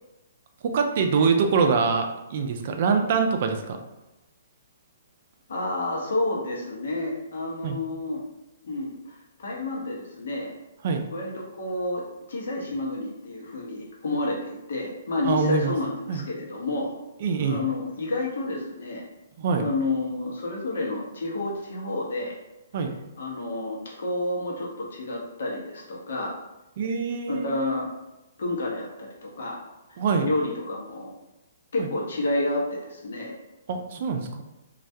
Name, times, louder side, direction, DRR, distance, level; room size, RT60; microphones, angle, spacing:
voice 1, 0.6-3.8 7.6-7.8 10.8-11.0 15.2-15.8 16.1-16.2 17.2-17.6 19.4-19.7 22.7-23.0 26.8-27.5 30.0-30.3 31.8-31.9 33.7-34.4, right 5 dB, 50° right, 5 dB, 0.3 m, -24 dB
voice 2, 5.5-8.2 8.6-10.5 11.1-11.3 11.6-16.9 17.5-19.0 19.6-22.4 23.2-26.3 27.3-27.9 28.4-29.6 29.9-31.1 31.7-33.3, left 2 dB, 70° left, -1 dB, 0.7 m, -30 dB
2.2 x 2.1 x 2.7 m, 1.0 s
hypercardioid pair, 145°, 0 cm